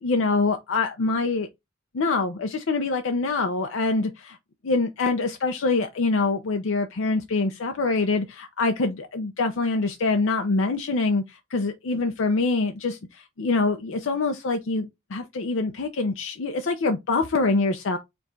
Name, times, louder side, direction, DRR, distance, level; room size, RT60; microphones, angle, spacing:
voice 1, 0.0-1.5 1.9-4.4 4.6-18.0, left 3 dB, 90° left, 0.5 m, -25 dB
4.6 x 2.4 x 3.8 m
head